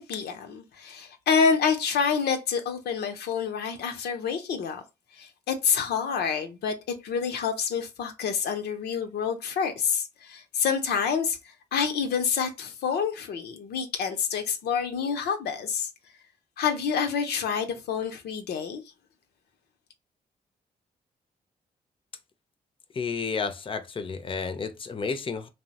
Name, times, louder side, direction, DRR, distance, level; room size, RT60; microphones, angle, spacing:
voice 1, 0.0-4.8 5.2-6.8 7.0-15.9 16.6-18.8, left 6 dB, 75° left, 0.6 m, -28 dB
voice 2, 22.9-25.5, left 5 dB, 30° left, 0.5 m, -31 dB
2.9 x 2.0 x 2.8 m
supercardioid pair, 60°, 17 cm